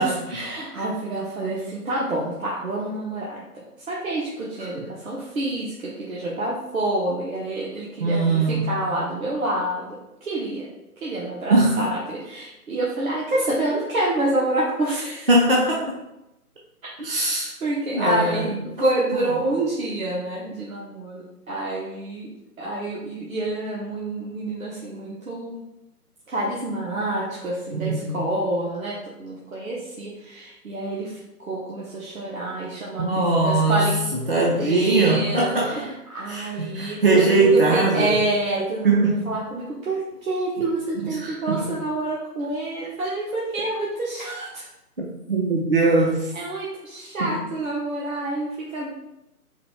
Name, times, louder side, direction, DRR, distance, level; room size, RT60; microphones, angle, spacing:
voice 1, 0.0-10.0 10.2-10.7 11.0-15.3 17.6-22.3 22.6-25.6 26.3-34.0 34.6-44.7 46.3-48.9, right 2 dB, 60° right, -5 dB, 1.0 m, -28 dB
voice 2, 8.0-8.8 11.5-11.8 15.3-15.8 17.0-17.5 17.9-18.9 27.7-28.2 33.0-33.9 34.3-35.8 36.3-38.1 38.8-39.3 41.2-41.6 45.0-46.3 47.2-47.4, right 2 dB, 40° right, -3 dB, 0.5 m, -21 dB
4.0 x 2.4 x 4.4 m, 0.90 s
figure-of-eight pair, 150°, 46 cm